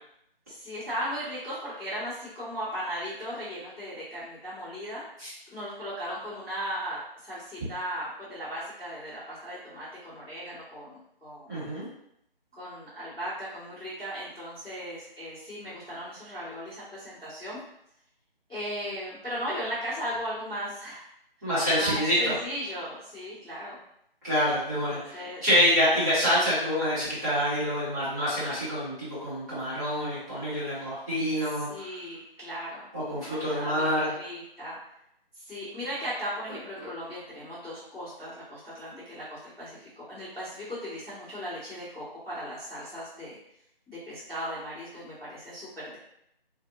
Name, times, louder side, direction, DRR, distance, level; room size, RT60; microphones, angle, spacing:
voice 1, 0.5-5.0 5.5-11.6 12.6-17.6 18.5-21.0 21.7-23.8 24.9-25.4 30.7-30.9 31.4-32.9 33.1-34.8 35.3-43.3 43.9-46.0, equal, 5° left, -26 dB, 0.9 m, -37 dB
voice 2, 11.5-11.9 21.4-22.3 24.2-31.9 32.9-34.1 36.8-36.9, equal, 20° right, -13 dB, 1.2 m, -26 dB
2.5 x 2.4 x 2.6 m, 0.76 s
figure-of-eight pair, 155°, 30 cm